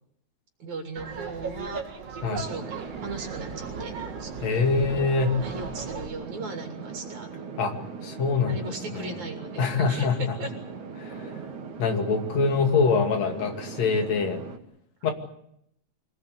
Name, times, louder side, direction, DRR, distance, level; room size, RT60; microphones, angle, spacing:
voice 1, 0.6-1.8 2.3-3.9 4.2-4.3 5.4-7.3 8.4-10.5 15.0-15.1, right 3 dB, 70° right, 3 dB, 4.2 m, -37 dB
Laughter, 1.0-6.1, right 5 dB, 55° right, 3.9 m, -37 dB
sound 1, 2.4-14.6, right 5 dB, 90° right, 3.4 m, -39 dB
voice 2, 4.4-5.3 7.6-7.7 8.0-8.5 8.9-9.1 9.6-10.2 11.8-14.4 15.0-15.1, left 4 dB, 65° left, 4 dB, 3.6 m, -24 dB
26.0 x 18.0 x 8.3 m, 0.76 s
omnidirectional pair, 3.3 m